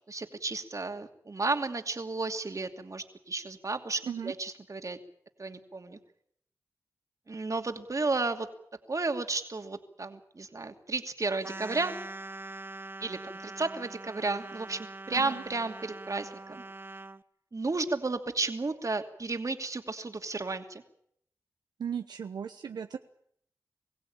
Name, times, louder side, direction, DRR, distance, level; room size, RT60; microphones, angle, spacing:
voice 1, 0.1-5.0 5.4-6.0 7.3-8.5 8.9-11.9 13.0-16.6 17.5-20.8, right 3 dB, 50° right, 6 dB, 2.7 m, -33 dB
sound 1, 11.4-17.2, right 2 dB, 30° right, 1.0 m, -43 dB
voice 2, 15.1-15.4 21.8-23.0, right 7 dB, 90° right, 7 dB, 0.9 m, -36 dB
23.0 x 16.0 x 8.9 m, 0.70 s
cardioid pair, 40°, 7 cm